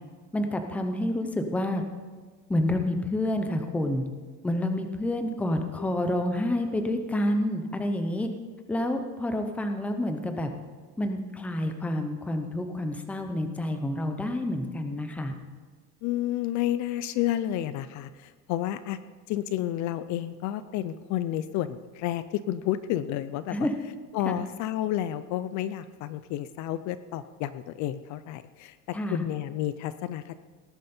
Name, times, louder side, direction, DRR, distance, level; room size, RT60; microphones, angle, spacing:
voice 1, 0.3-1.8 2.5-4.0 4.4-8.3 8.7-10.5 11.0-15.4 23.5-23.8 24.3-24.4 28.9-29.3, left 1 dB, 5° left, 6 dB, 0.6 m, -28 dB
voice 2, 16.0-19.0 19.3-23.7 24.1-30.4, left 12 dB, 50° left, 14 dB, 0.5 m, -31 dB
18.5 x 10.0 x 4.3 m, 1.5 s
cardioid pair, 175°, 37 cm